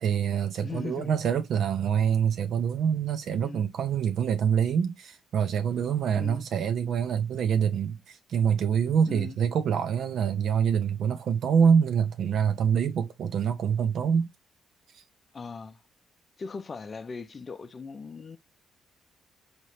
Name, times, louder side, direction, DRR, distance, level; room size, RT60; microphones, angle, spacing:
voice 1, 0.0-14.3, right 7 dB, 70° right, 0.5 m, -25 dB
voice 2, 0.6-1.2 3.4-3.6 6.2-6.5 9.1-9.4 15.3-15.8 16.4-18.4, left 4 dB, 35° left, 0.4 m, -39 dB
4.2 x 2.9 x 3.1 m
cardioid pair, 90°, 0 cm